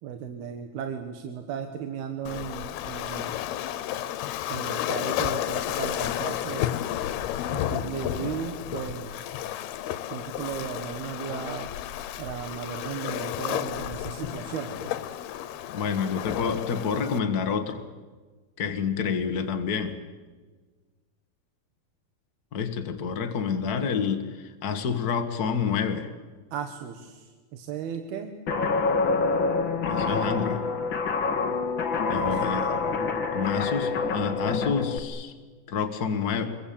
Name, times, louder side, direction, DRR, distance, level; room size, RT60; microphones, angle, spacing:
voice 1, 0.0-3.4 4.5-6.7 7.5-9.1 10.1-11.7 12.2-14.9 26.5-28.3 32.1-32.5, right 8 dB, 80° right, 6 dB, 3.4 m, -36 dB
Waves surf, 2.3-17.2, left 12 dB, 85° left, 3.0 m, -32 dB
voice 2, 15.7-17.8 18.6-20.0 22.5-26.1 29.9-30.6 32.1-32.7 33.3-35.3 35.7-36.5, left 6 dB, 65° left, 6 dB, 0.9 m, -28 dB
Guitar, 28.5-35.0, left 4 dB, 45° left, 1.6 m, -26 dB
27.0 x 22.5 x 8.7 m, 1.4 s
omnidirectional pair, 4.5 m